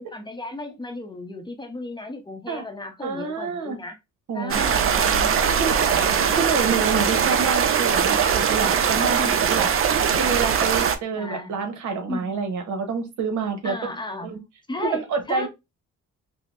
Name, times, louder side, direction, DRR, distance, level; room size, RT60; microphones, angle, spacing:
voice 1, 0.1-4.0 4.3-6.5 9.2-9.6 11.1-11.5 12.1-12.4 13.6-14.3 14.7-15.5, left 2 dB, 15° left, 0.7 m, -35 dB
voice 2, 3.0-3.8 4.3-4.6 5.5-5.8 6.3-9.2 9.5-9.7 10.1-13.8 14.2-14.4 14.8-15.5, right 5 dB, 75° right, 1.0 m, -27 dB
sound 1, 4.5-11.0, right 7 dB, 45° right, 0.5 m, -21 dB
5.3 x 2.1 x 2.4 m
cardioid pair, 90°, 30 cm